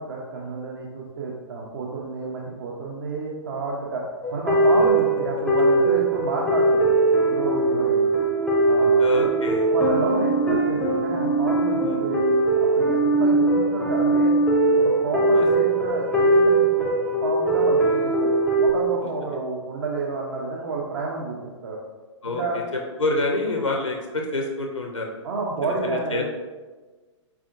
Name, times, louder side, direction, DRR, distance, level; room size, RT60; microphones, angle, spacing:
voice 1, 0.1-4.0 4.3-6.9 7.2-8.1 8.6-9.3 9.7-12.2 12.5-14.4 14.8-16.9 17.2-21.8 22.2-22.6 25.2-26.2, right 3 dB, 50° right, -2 dB, 0.8 m, -30 dB
sound 1, 4.2-18.7, right 2 dB, 5° left, 0.6 m, -20 dB
voice 2, 9.0-9.7 11.8-12.2 15.3-15.4 22.2-22.4 22.7-25.1 25.6-26.2, left 2 dB, 90° left, 2 dB, 0.6 m, -27 dB
6.0 x 3.4 x 2.5 m, 1.3 s
figure-of-eight pair, 115°, 16 cm